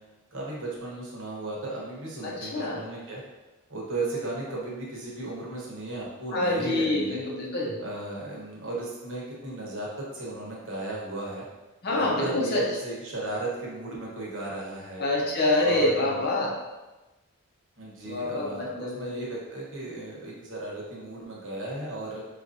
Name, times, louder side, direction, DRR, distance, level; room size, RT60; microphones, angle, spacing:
voice 1, 0.3-3.2 3.7-7.2 7.8-11.4 11.9-15.0 15.6-16.2 17.8-22.2, right 2 dB, 60° right, -4 dB, 1.0 m, -35 dB
voice 2, 2.2-2.8 6.3-7.8 11.8-12.6 15.0-16.5 18.0-19.1, left 2 dB, 45° left, -3 dB, 0.7 m, -26 dB
4.6 x 2.5 x 2.6 m, 1.1 s
head